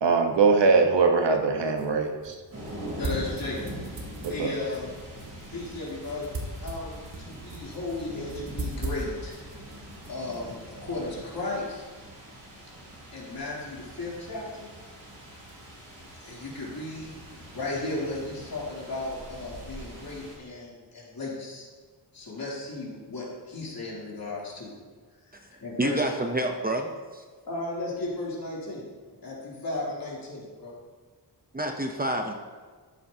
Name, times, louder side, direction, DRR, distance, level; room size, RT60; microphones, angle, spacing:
voice 1, 0.0-2.3 4.2-4.5, right 4 dB, 90° right, 3 dB, 1.2 m, -22 dB
sound 1, 1.4-11.2, right 1 dB, 55° right, 1.6 m, -40 dB
sound 2, 2.5-20.4, right 1 dB, 35° right, 3.3 m, -44 dB
voice 2, 3.0-3.7 4.2-4.9 5.5-6.3 6.6-9.4 10.1-11.8 13.1-14.7 16.2-21.7 22.1-24.8 25.6-26.1 27.5-28.8 29.1-30.7, left 2 dB, 55° left, -6 dB, 3.1 m, -35 dB
voice 3, 25.8-27.2 31.5-32.3, right 1 dB, 20° right, 3 dB, 0.7 m, -28 dB
13.0 x 8.9 x 2.8 m, 1.5 s
wide cardioid pair, 145°, 42 cm